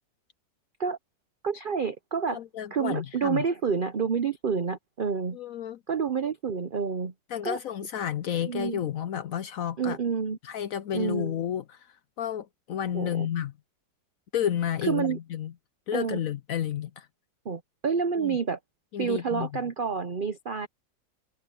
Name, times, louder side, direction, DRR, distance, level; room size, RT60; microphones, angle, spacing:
voice 1, 1.4-2.4 2.7-5.4 5.9-7.1 7.4-7.6 8.5-8.8 9.8-10.4 10.9-11.3 12.9-13.3 14.8-15.2 15.9-16.2 17.4-18.6 19.0-20.7, right 6 dB, 75° right, 0.4 m, -28 dB
voice 2, 2.3-3.4 5.3-5.8 7.3-10.0 10.4-13.5 14.3-15.5 15.9-17.1 18.2-18.4 18.9-19.5, left 10 dB, 70° left, 0.8 m, -31 dB
omnidirectional pair, 1.9 m